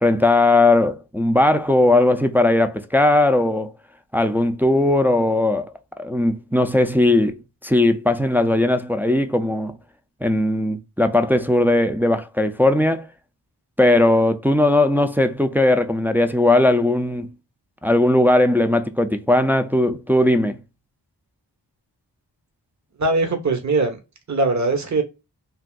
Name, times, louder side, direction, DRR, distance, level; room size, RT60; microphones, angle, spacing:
voice 1, 0.0-3.7 4.1-5.7 6.0-9.8 10.2-13.1 13.8-17.3 17.8-20.6, left 1 dB, 5° right, 0.4 m, -18 dB
voice 2, 23.0-24.0 24.3-25.0, right 3 dB, 40° right, 0.9 m, -20 dB
3.4 x 2.5 x 2.2 m
cardioid pair, 40°, 44 cm